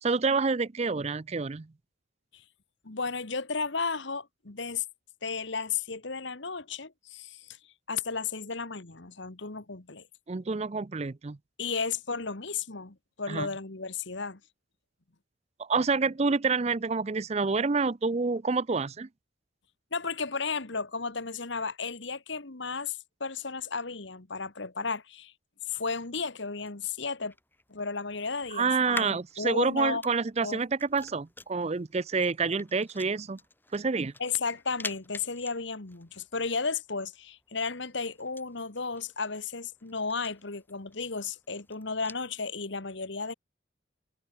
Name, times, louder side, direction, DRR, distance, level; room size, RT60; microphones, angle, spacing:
voice 1, 0.0-1.7 10.3-11.4 13.3-13.5 15.6-19.1 28.5-33.4 33.7-34.1, right 4 dB, 30° right, 0.5 m, -28 dB
voice 2, 2.8-4.8 5.2-7.6 7.9-10.0 11.6-14.4 19.9-25.3 25.7-27.3 27.7-30.0 30.4-30.6 34.2-43.3, left 4 dB, 65° left, 1.5 m, -34 dB
sound 1, 26.4-42.3, left 2 dB, 10° left, 4.3 m, -48 dB
head